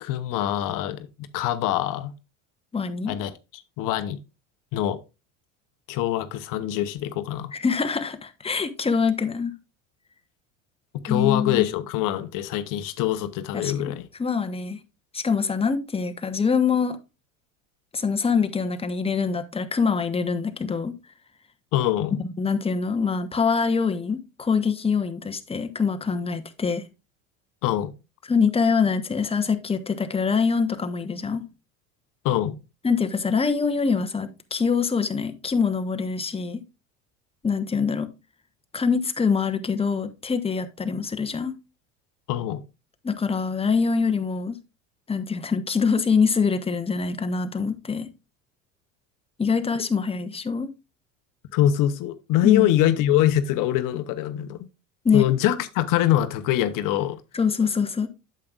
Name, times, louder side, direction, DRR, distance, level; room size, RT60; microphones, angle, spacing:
voice 1, 0.0-1.1 1.3-2.1 3.1-4.2 4.7-5.0 5.9-7.5 11.0-14.1 21.7-22.2 27.6-27.9 32.2-32.6 42.3-42.6 51.5-54.6 55.1-57.2, left 12 dB, 55° left, 0.9 m, -24 dB
voice 2, 2.7-3.2 7.5-9.5 11.1-11.7 13.5-13.7 14.2-14.8 15.1-17.0 17.9-20.9 22.1-26.9 28.3-31.4 32.8-36.6 37.4-38.1 38.7-41.5 43.0-44.6 45.1-48.1 49.4-50.7 52.4-52.7 55.0-55.3 57.3-58.1, left 5 dB, 15° left, 1.0 m, -24 dB
8.5 x 7.6 x 2.4 m
hypercardioid pair, 85°, 39 cm